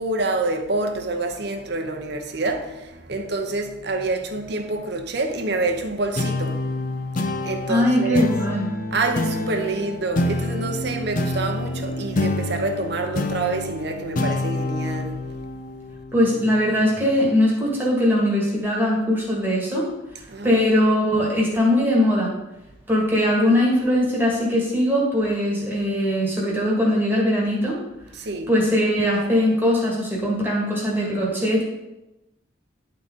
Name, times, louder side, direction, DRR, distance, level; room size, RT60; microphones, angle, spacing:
voice 1, 0.0-8.3 8.9-15.3 20.3-20.6 28.1-28.5, right 2 dB, 60° right, 0.8 m, -27 dB
sound 1, 6.2-17.0, left 2 dB, 45° left, 0.6 m, -27 dB
voice 2, 7.7-8.7 16.1-19.8 20.4-22.4 22.9-27.8 28.5-31.6, left 1 dB, 10° right, 1.6 m, -20 dB
10.5 x 3.9 x 3.7 m
head